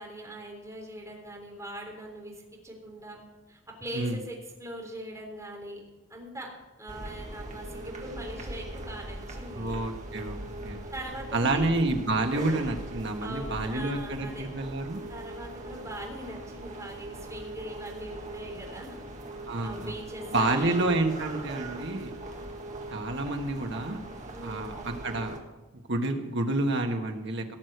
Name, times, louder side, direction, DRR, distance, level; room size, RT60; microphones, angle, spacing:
voice 1, 0.0-2.3 2.6-3.2 3.5-5.8 6.1-6.5 6.8-9.8 10.9-11.8 13.2-14.5 15.1-19.0 19.6-20.8 24.3-24.8, right 1 dB, 15° right, -2 dB, 3.6 m, -41 dB
sound 1, 6.9-25.4, right 1 dB, 35° right, 1.8 m, -40 dB
voice 2, 9.5-10.8 11.3-15.0 19.5-19.9 20.3-22.1 22.9-24.0 24.4-25.3 25.9-27.4, right 2 dB, 55° right, 4 dB, 1.5 m, -29 dB
18.0 x 6.4 x 8.0 m, 1.1 s
head